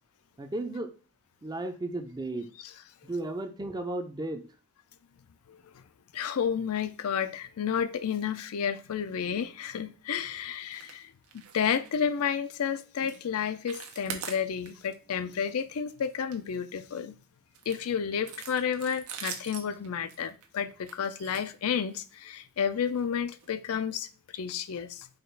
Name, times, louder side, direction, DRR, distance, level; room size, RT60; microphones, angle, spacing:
voice 1, 0.4-0.9 1.4-2.5 3.0-4.4, right 2 dB, 20° right, 0.5 m, -34 dB
voice 2, 5.5-5.8 6.1-11.1 11.5-17.1 17.7-24.1 24.3-25.1, left 7 dB, 70° left, 0.4 m, -31 dB
sound 1, 10.7-11.0 11.2-11.6 11.8-12.0 12.5-12.7 13.0-13.2 13.5-14.9 15.3-15.5 15.9-17.0 17.5-22.1 22.9-23.0 23.4-23.5 23.9-24.0, right 7 dB, 80° right, 0.8 m, -43 dB
4.9 x 2.4 x 4.5 m
head